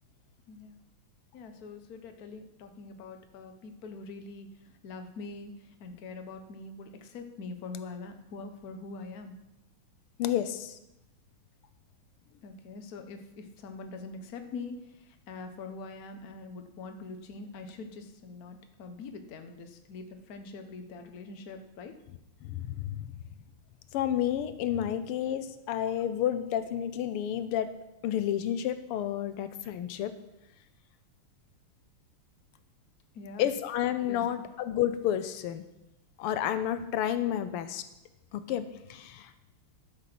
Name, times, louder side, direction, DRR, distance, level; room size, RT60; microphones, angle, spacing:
voice 1, 0.5-0.8 1.3-9.4 12.4-21.9 33.1-33.5 34.1-34.3, left 3 dB, 50° left, 6 dB, 1.3 m, -44 dB
voice 2, 10.2-10.8 22.4-23.1 23.9-27.7 28.0-30.1 33.4-35.6 36.2-37.8 38.3-39.3, left 10 dB, 90° left, 11 dB, 1.7 m, -30 dB
11.5 x 6.9 x 5.9 m, 0.90 s
omnidirectional pair, 2.4 m